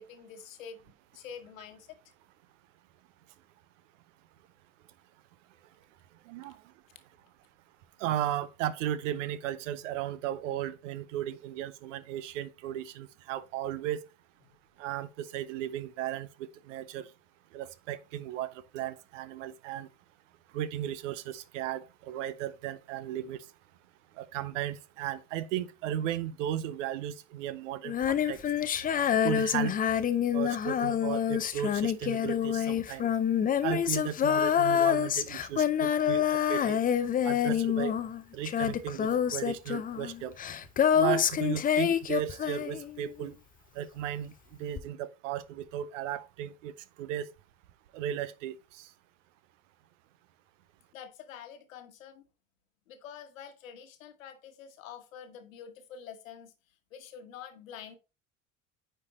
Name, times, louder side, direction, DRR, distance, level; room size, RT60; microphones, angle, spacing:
voice 1, 0.0-2.0 36.1-36.2 50.9-52.2 52.9-56.5 56.9-58.0, left 7 dB, 70° left, 1.3 m, -47 dB
voice 2, 6.2-6.6 8.0-14.0 14.8-17.1 17.5-19.9 20.5-23.5 24.1-28.4 29.2-29.7 30.3-33.1 33.6-36.8 37.2-37.9 38.3-40.4 40.9-43.4 43.7-47.3 47.9-48.9, right 11 dB, 65° right, 0.7 m, -35 dB
Female singing, 27.8-43.2 44.8-44.9, left 9 dB, 20° left, 0.5 m, -27 dB
9.5 x 4.5 x 3.0 m
figure-of-eight pair, 70°, 41 cm